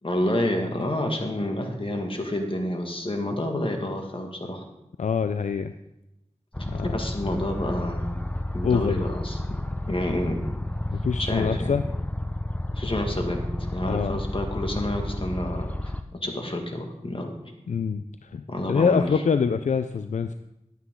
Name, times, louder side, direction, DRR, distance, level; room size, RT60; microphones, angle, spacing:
voice 1, 0.0-4.6 6.6-8.3 8.5-9.6 9.9-10.5 11.2-11.8 12.7-15.7 16.1-17.3 18.5-19.1, left 1 dB, 45° left, 3 dB, 1.8 m, -29 dB
voice 2, 5.0-5.7 6.7-6.9 8.6-8.9 10.9-11.8 13.8-14.2 17.7-20.3, left 6 dB, 75° left, 10 dB, 0.4 m, -25 dB
sound 1, 6.5-16.0, left 1 dB, 10° left, 0.7 m, -31 dB
11.5 x 8.2 x 3.8 m, 0.90 s
wide cardioid pair, 45°, 13 cm